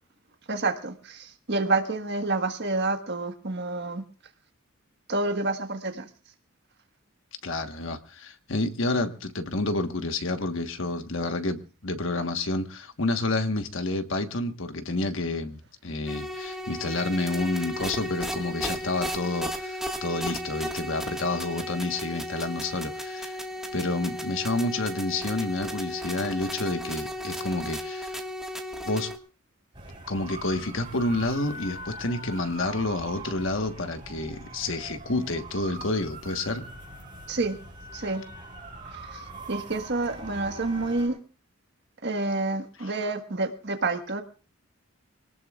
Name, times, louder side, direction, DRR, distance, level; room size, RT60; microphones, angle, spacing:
voice 1, 0.5-4.0 5.1-6.1 37.3-37.6 37.9-38.2 39.1-41.2 42.0-44.2, right 3 dB, 50° right, 7 dB, 1.4 m, -28 dB
voice 2, 7.4-23.4 23.7-28.2 28.8-29.1 30.1-36.6 42.8-42.9, left 2 dB, 60° left, 7 dB, 1.3 m, -29 dB
sound 1, 16.1-29.2, equal, ahead, 1.6 m, -34 dB
sound 2, 29.7-41.1, right 2 dB, 25° right, 6.7 m, -42 dB
24.5 x 18.5 x 2.4 m, 0.37 s
head